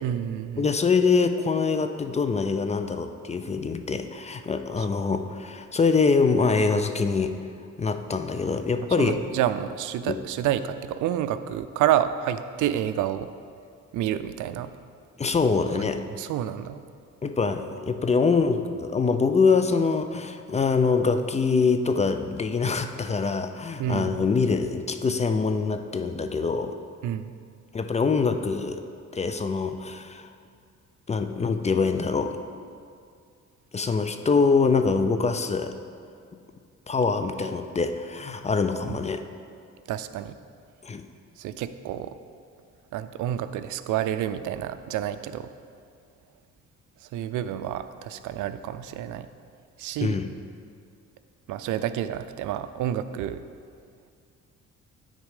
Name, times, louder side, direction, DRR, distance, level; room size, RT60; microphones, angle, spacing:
voice 1, 0.0-0.7 9.0-13.3 13.9-14.7 15.8-15.9 16.2-16.8 23.8-24.3 27.0-27.3 39.9-40.4 41.4-42.2 42.9-45.5 47.1-49.3 49.8-50.2 51.5-53.4, right 11 dB, 80° right, 11 dB, 0.5 m, -29 dB
voice 2, 0.6-7.4 7.8-9.2 10.1-10.2 15.2-16.0 17.2-26.8 27.7-28.8 29.1-30.3 31.1-32.3 33.7-35.8 36.9-39.2 40.8-41.0 50.0-50.3, left 4 dB, 25° left, 8 dB, 0.4 m, -24 dB
9.4 x 4.1 x 4.9 m, 2.3 s
cardioid pair, 90°, 30 cm